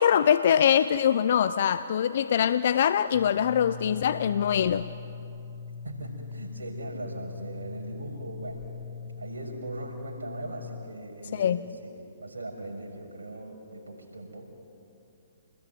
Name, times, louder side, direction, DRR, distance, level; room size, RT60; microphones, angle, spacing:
voice 1, 0.0-4.8 11.3-11.6, left 9 dB, 55° left, 14 dB, 0.7 m, -23 dB
sound 1, 3.1-10.6, left 5 dB, 40° left, 3.7 m, -41 dB
voice 2, 5.8-8.6 9.0-14.5, right 2 dB, 85° right, 1 dB, 6.4 m, -39 dB
28.0 x 21.0 x 9.4 m, 2.7 s
hypercardioid pair, 130°, 0 cm